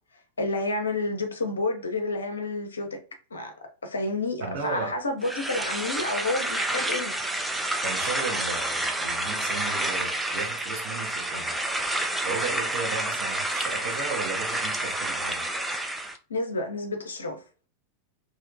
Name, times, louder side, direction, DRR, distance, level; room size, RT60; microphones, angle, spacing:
voice 1, 0.4-3.0 3.3-3.5 3.8-7.1 16.3-17.4, left 2 dB, 75° left, 0.6 m, -29 dB
voice 2, 4.4-4.9 7.8-11.6 12.2-15.5, right 4 dB, 50° right, 0.9 m, -35 dB
sound 1, 5.2-16.2, right 1 dB, 5° right, 0.3 m, -29 dB
2.7 x 2.1 x 2.5 m
figure-of-eight pair, 90°, 0 cm